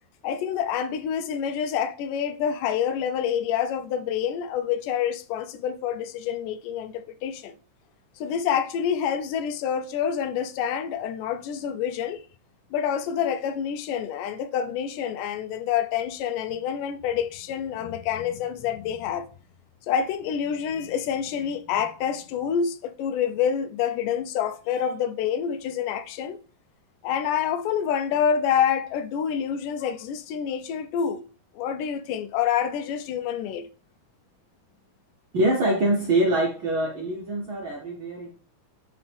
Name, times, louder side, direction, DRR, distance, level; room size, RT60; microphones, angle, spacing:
voice 1, 0.2-7.6 8.2-12.2 12.7-19.3 19.9-26.4 27.0-31.2 31.6-33.7, left 8 dB, 85° left, 2.2 m, -27 dB
voice 2, 35.3-38.3, right 1 dB, 80° right, 1.1 m, -24 dB
11.5 x 4.0 x 3.4 m
omnidirectional pair, 3.7 m